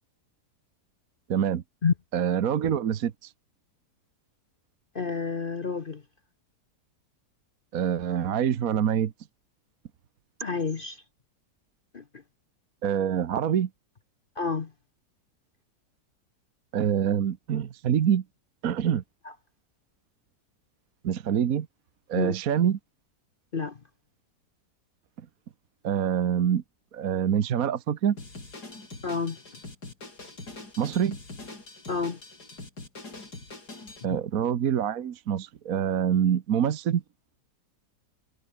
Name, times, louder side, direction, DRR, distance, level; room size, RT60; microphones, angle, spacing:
voice 1, 1.3-1.6 2.1-3.3 7.7-9.1 12.8-13.7 16.7-18.2 18.6-19.0 21.0-21.7 22.1-22.8 25.8-26.6 26.9-28.2 30.8-31.2 34.0-37.0, right 9 dB, 60° right, 1.5 m, -25 dB
voice 2, 4.9-6.0 10.4-11.0 11.9-12.0 14.4-14.7 19.2-19.3 22.1-22.3 23.5-23.8 29.0-29.4 31.9-32.2, left 5 dB, 40° left, 1.0 m, -29 dB
Drum kit, 28.2-34.0, left 2 dB, 75° left, 6.1 m, -43 dB
omnidirectional pair, 1.7 m